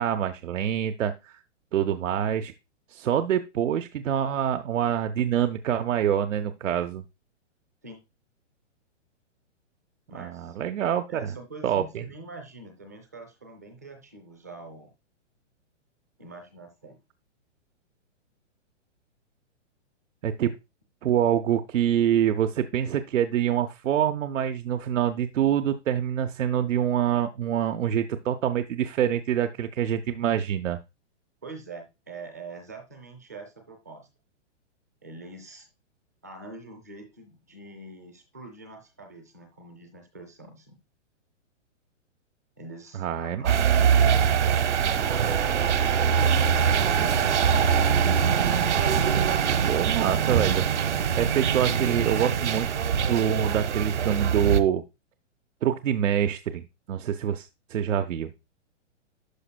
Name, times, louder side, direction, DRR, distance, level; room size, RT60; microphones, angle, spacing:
voice 1, 0.0-1.4 1.7-2.5 2.9-7.0 10.1-11.2 11.6-12.0 20.2-20.5 21.0-30.8 43.0-43.6 49.7-50.7 51.2-52.7 53.0-54.8 55.6-56.6 56.9-58.3, right 9 dB, 90° right, 8 dB, 0.7 m, -26 dB
voice 2, 10.1-10.6 11.1-14.9 16.2-17.0 31.4-34.1 35.0-35.7 36.2-40.8 42.6-46.4, right 3 dB, 15° right, 5 dB, 0.5 m, -44 dB
sound 1, 43.4-54.6, right 7 dB, 70° right, 1.0 m, -23 dB
11.5 x 5.0 x 2.2 m, 0.25 s
hypercardioid pair, 180°, 37 cm